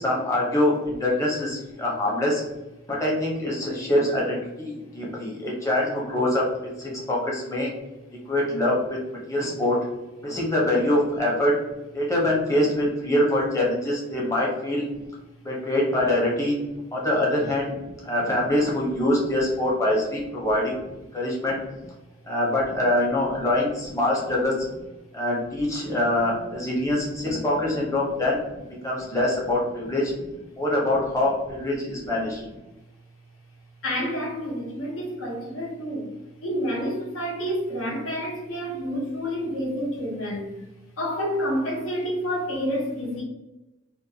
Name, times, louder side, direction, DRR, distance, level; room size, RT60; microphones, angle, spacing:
voice 1, 0.0-2.4 2.9-7.7 8.3-9.0 9.3-9.8 10.2-11.5 11.9-14.8 15.4-16.6 16.9-17.7 18.0-21.6 22.3-24.7 25.1-28.4 28.8-30.1 30.5-32.5, left 1 dB, 15° left, -4 dB, 0.7 m, -24 dB
voice 2, 33.8-36.1 36.4-40.5 41.0-43.2, equal, 85° left, -2 dB, 0.9 m, -29 dB
2.6 x 2.1 x 2.6 m, 1.0 s
head